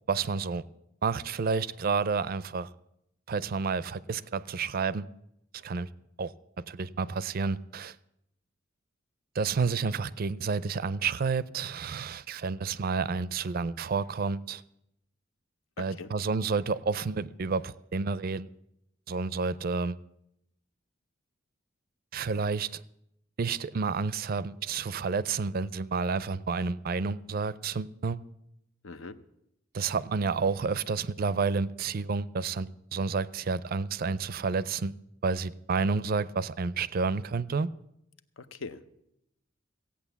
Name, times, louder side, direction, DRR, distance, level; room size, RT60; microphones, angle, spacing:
voice 1, 0.1-0.6 1.0-2.7 3.3-5.1 5.5-5.9 6.2-6.3 6.7-7.9 9.4-14.6 15.8-18.5 19.1-20.0 22.1-22.8 23.4-28.2 29.7-35.0 35.2-37.7, right 4 dB, 50° right, 0.4 m, -30 dB
voice 2, 15.8-16.1 28.8-29.2 38.4-38.9, left 4 dB, 80° left, 0.8 m, -42 dB
15.5 x 8.6 x 7.1 m
head